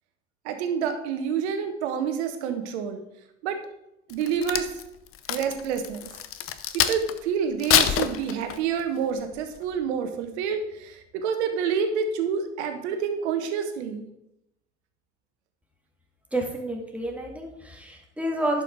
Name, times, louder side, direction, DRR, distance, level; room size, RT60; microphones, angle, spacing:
voice 1, 0.4-3.0 3.4-3.6 4.1-4.7 5.3-6.0 6.7-14.1, right 7 dB, 65° right, 7 dB, 1.5 m, -28 dB
Crack, 4.1-7.2 7.6-8.8 9.3-9.6, left 10 dB, 35° left, 0.8 m, -25 dB
voice 2, 16.3-18.6, right 1 dB, 5° right, 0 dB, 2.2 m, -29 dB
11.0 x 5.7 x 4.8 m, 0.85 s
figure-of-eight pair, 70°, 36 cm